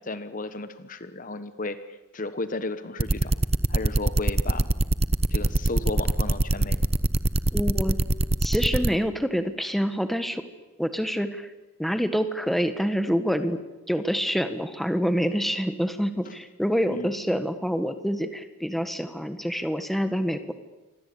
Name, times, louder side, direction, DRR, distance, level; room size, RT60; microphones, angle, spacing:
voice 1, 0.0-3.3 3.7-4.7 5.3-6.8 16.2-16.3 16.9-17.1, left 2 dB, 40° left, 11 dB, 1.2 m, -34 dB
sound 1, 3.0-8.9, right 2 dB, 30° right, 0.8 m, -22 dB
voice 2, 7.5-8.0 8.4-10.4 10.8-11.5 11.8-13.6 13.9-20.5, equal, ahead, 9 dB, 1.6 m, -26 dB
27.5 x 24.5 x 8.6 m, 1.1 s
head